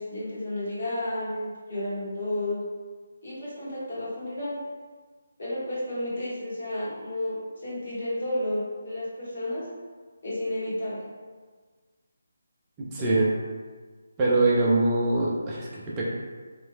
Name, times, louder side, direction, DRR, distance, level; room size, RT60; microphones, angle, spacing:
voice 1, 0.0-2.6 3.2-4.6 5.4-9.7 10.2-11.0, left 1 dB, 50° left, -9 dB, 1.4 m, -32 dB
voice 2, 12.9-13.3 14.2-16.0, right 2 dB, 15° right, -6 dB, 0.6 m, -23 dB
3.0 x 3.0 x 2.3 m, 1.5 s
figure-of-eight pair, 150°, 0 cm